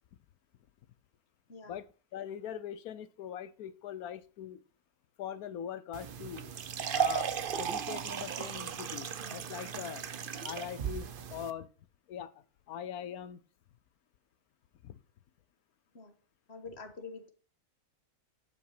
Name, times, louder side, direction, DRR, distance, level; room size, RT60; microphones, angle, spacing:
voice 1, 1.7-4.6 5.2-6.5 6.9-10.0 10.4-11.7 12.1-13.4 14.8-15.0, left 9 dB, 70° left, 1.1 m, -42 dB
sound 1, 5.9-11.5, right 7 dB, 50° right, 0.7 m, -36 dB
voice 2, 16.5-17.3, left 4 dB, 40° left, 1.7 m, -46 dB
12.0 x 5.7 x 5.8 m
omnidirectional pair, 1.7 m